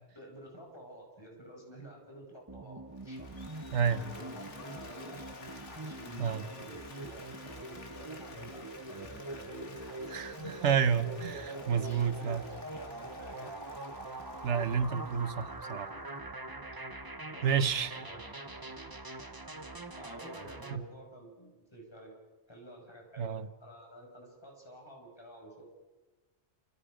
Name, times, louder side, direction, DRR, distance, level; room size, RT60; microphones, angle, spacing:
voice 1, 0.0-5.2 5.7-10.2 10.9-13.6 17.3-17.5 17.9-18.2 19.9-22.1 22.5-25.7, right 1 dB, 20° left, 0 dB, 5.8 m, -51 dB
sound 1, 2.5-20.8, right 2 dB, 20° right, 1.1 m, -43 dB
Applause, 3.0-16.2, left 3 dB, 80° left, 2.3 m, -52 dB
voice 2, 3.7-4.1 6.2-6.4 10.1-12.4 14.4-15.9 17.4-18.0 20.7-20.8 23.2-23.5, right 7 dB, 75° right, 13 dB, 1.3 m, -30 dB
30.0 x 27.0 x 5.1 m, 1.2 s
omnidirectional pair, 1.2 m